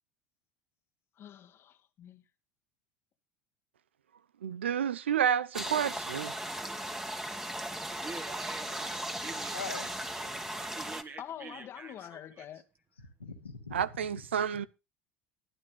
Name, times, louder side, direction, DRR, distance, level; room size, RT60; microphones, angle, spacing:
voice 1, 1.2-2.2 11.2-12.6, left 10 dB, 45° left, 1.6 m, -45 dB
voice 2, 4.4-6.3 13.7-14.7, right 9 dB, 80° right, 0.7 m, -30 dB
sound 1, 5.5-11.0, right 1 dB, 10° right, 1.9 m, -37 dB
voice 3, 7.9-12.5, right 4 dB, 35° right, 2.1 m, -47 dB
voice 4, 9.5-9.9 13.0-14.7, left 5 dB, 90° left, 2.6 m, -43 dB
23.0 x 11.0 x 2.3 m
figure-of-eight pair, 70°, 6 cm